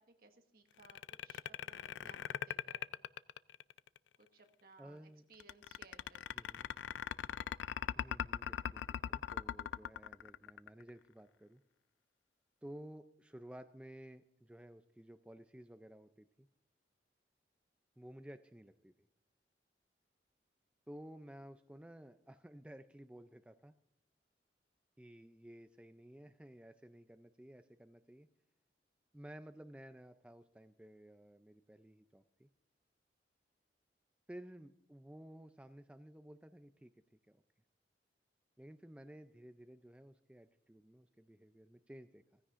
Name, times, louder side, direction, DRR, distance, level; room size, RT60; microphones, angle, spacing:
voice 1, 0.0-2.9 4.2-6.6, right 3 dB, 55° right, 5 dB, 1.3 m, -63 dB
sound 1, 0.8-4.0 5.4-10.9, left 9 dB, 85° left, 0.3 m, -40 dB
voice 2, 4.8-5.2 6.3-6.7 7.9-11.6 12.6-16.5 18.0-19.1 20.9-23.7 25.0-28.3 29.1-32.5 34.3-37.4 38.6-42.4, right 1 dB, 5° right, 8 dB, 0.3 m, -54 dB
16.5 x 15.5 x 2.5 m, 0.82 s
head